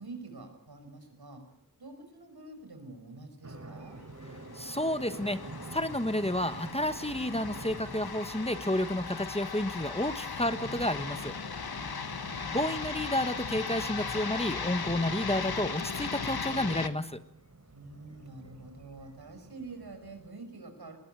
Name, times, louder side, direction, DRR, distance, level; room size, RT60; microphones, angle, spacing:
voice 1, 0.0-1.4 1.8-4.0 11.8-12.5 17.7-21.0, right 3 dB, 80° right, 7 dB, 5.8 m, -47 dB
sound 1, 3.4-20.3, right 2 dB, 45° right, 3.4 m, -49 dB
sound 2, 4.3-16.9, left 5 dB, 80° left, 1.5 m, -37 dB
voice 2, 4.5-11.3 12.5-17.2, left 1 dB, 15° left, 11 dB, 1.4 m, -31 dB
21.0 x 20.5 x 9.3 m, 0.76 s
wide cardioid pair, 70°, 37 cm